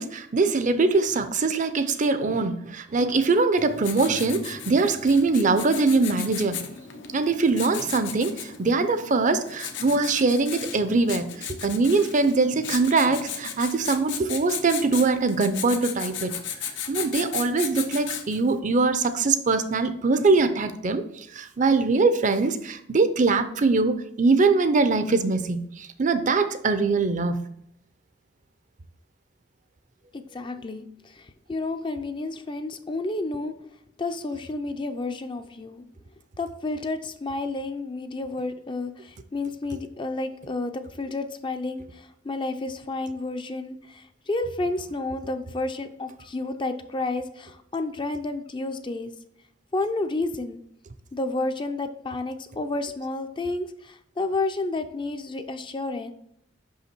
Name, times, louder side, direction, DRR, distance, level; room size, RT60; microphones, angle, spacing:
voice 1, 0.0-6.6 7.1-11.3 11.6-16.4 16.9-27.4, right 3 dB, 40° right, 10 dB, 0.6 m, -22 dB
Writing, 3.6-18.5, left 8 dB, 80° left, 0.9 m, -36 dB
voice 2, 30.1-33.5 34.0-35.9 36.4-49.1 49.7-50.6 51.1-56.1, left 2 dB, 25° left, 8 dB, 0.5 m, -31 dB
5.8 x 5.6 x 4.4 m, 0.72 s
head